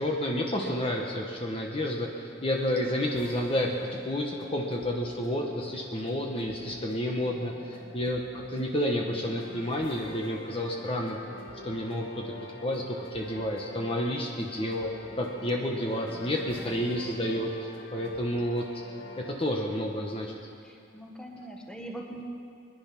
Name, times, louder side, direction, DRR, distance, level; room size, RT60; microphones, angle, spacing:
voice 1, 0.0-11.2 11.6-12.3 12.6-18.6 19.2-20.3, left 1 dB, 30° left, 0 dB, 1.2 m, -30 dB
sound 1, 2.5-19.6, left 1 dB, 90° left, 1.7 m, -46 dB
voice 2, 7.2-8.0 16.1-17.2 20.6-22.2, right 1 dB, 5° left, 0 dB, 1.5 m, -45 dB
22.0 x 10.5 x 6.0 m, 2.5 s
head